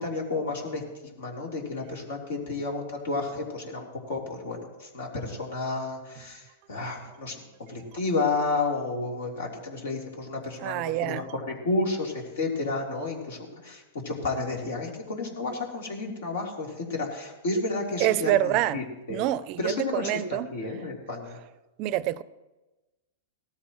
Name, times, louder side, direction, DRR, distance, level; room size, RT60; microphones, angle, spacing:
voice 1, 0.0-19.2 19.6-21.4, left 3 dB, 75° left, -1 dB, 3.7 m, -31 dB
voice 2, 10.6-11.3 18.0-18.8 19.1-20.5 21.8-22.2, right 14 dB, 45° right, 18 dB, 0.5 m, -26 dB
18.0 x 13.5 x 3.1 m, 1.1 s
hypercardioid pair, 125°, 0 cm